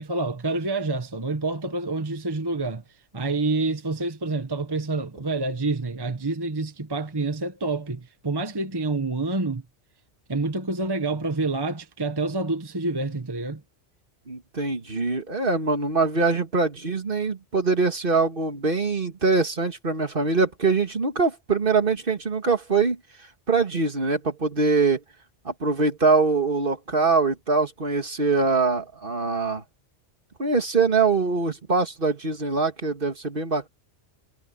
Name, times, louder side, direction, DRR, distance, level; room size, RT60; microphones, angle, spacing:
voice 1, 0.0-2.8 3.1-9.6 10.3-13.6, right 3 dB, 20° right, 1.1 m, -27 dB
voice 2, 14.3-23.0 23.5-25.0 25.5-29.6 30.4-33.7, right 4 dB, 45° right, 2.2 m, -23 dB
omnidirectional pair, 1.3 m